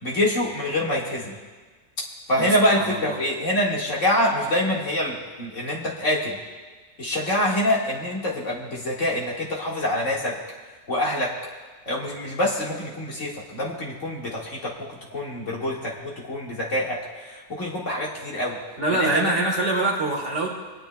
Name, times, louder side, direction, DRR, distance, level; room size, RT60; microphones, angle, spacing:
voice 1, 0.0-1.4 2.3-6.4 7.0-10.4 10.9-11.3 11.9-18.6 18.9-19.4, left 1 dB, 55° left, -4 dB, 2.2 m, -25 dB
voice 2, 2.3-3.2 18.8-20.5, right 2 dB, 55° right, -1 dB, 2.0 m, -25 dB
27.0 x 9.6 x 2.3 m, 1.4 s
omnidirectional pair, 1.5 m